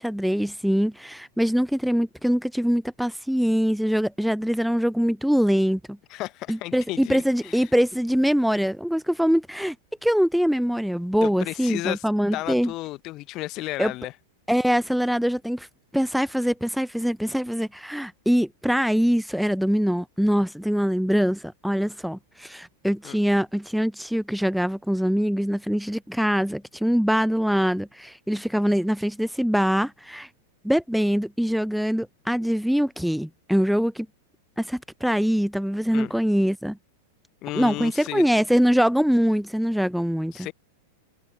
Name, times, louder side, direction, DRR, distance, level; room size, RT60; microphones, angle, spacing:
voice 1, 0.0-6.0 6.5-9.8 10.0-12.7 13.8-13.9 14.5-15.7 15.9-30.3 30.6-34.1 34.6-36.8 37.5-40.5, equal, ahead, 0.5 m, -23 dB
voice 2, 6.1-7.7 11.2-12.0 12.3-14.1 23.0-23.2 35.9-36.1 37.4-38.3 40.3-40.5, left 18 dB, 40° left, 0.9 m, -33 dB
figure-of-eight pair, 95°, 0 cm